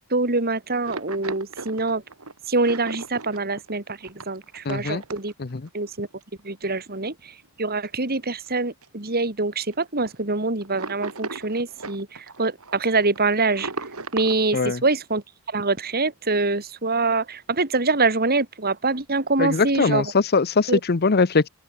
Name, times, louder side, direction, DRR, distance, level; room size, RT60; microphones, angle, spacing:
voice 1, 0.1-2.0 2.5-4.0 4.3-5.3 5.7-6.1 6.4-7.3 7.6-13.7 14.1-15.2 15.5-20.0 20.7-20.8, right 3 dB, 45° right, 3.1 m, -24 dB
sound 1, 0.7-5.7 6.0-6.2 7.0-7.1 7.4-7.5 8.0-8.5 8.8-8.9 9.1-9.3 9.7-10.1 10.6-14.4, right 3 dB, 80° right, 3.6 m, -36 dB
voice 2, 4.7-5.0 5.4-5.6 14.5-14.8 19.4-21.5, left 4 dB, 45° left, 0.7 m, -21 dB
open air
head